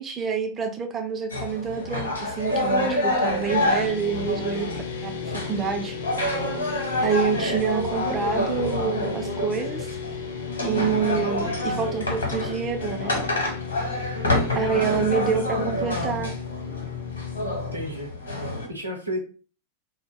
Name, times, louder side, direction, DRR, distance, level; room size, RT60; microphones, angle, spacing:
voice 1, 0.0-6.0 7.0-10.0 10.6-13.3 14.6-16.3, right 6 dB, 20° right, 5 dB, 0.3 m, -27 dB
sound 1, 1.3-18.7, left 1 dB, 75° left, 0.9 m, -28 dB
sound 2, 3.5-17.9, left 6 dB, 60° left, 0.5 m, -35 dB
voice 2, 14.8-15.2 17.7-18.1 18.4-19.2, equal, 85° right, 1 dB, 0.6 m, -32 dB
2.1 x 2.1 x 3.3 m, 0.37 s
figure-of-eight pair, 90°, 0 cm